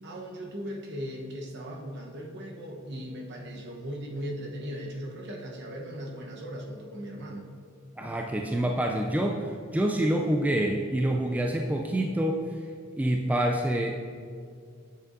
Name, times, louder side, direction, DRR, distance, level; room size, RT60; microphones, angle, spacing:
voice 1, 0.0-7.5, equal, 55° right, 0 dB, 1.0 m, -38 dB
voice 2, 8.0-12.4 13.0-13.9, right 1 dB, 5° right, 1 dB, 0.3 m, -27 dB
8.4 x 6.7 x 2.6 m, 2.2 s
head